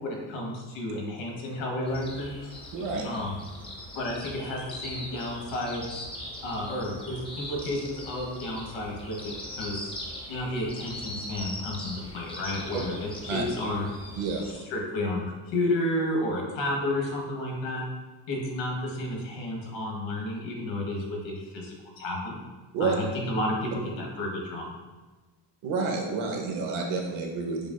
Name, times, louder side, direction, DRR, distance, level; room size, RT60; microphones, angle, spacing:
voice 1, 0.0-2.5 3.0-3.4 3.9-6.0 6.4-9.9 10.3-13.9 14.5-17.8 18.3-22.4 22.8-23.7 24.0-24.7, left 1 dB, 70° left, -1 dB, 1.2 m, -31 dB
sound 1, 1.9-14.5, left 1 dB, 10° left, 0.4 m, -41 dB
voice 2, 2.7-3.1 13.3-13.4 14.2-14.4 22.7-22.9 25.6-27.7, right 4 dB, 85° right, 1 dB, 0.9 m, -29 dB
6.6 x 2.4 x 2.2 m, 1.3 s
cardioid pair, 155°, 47 cm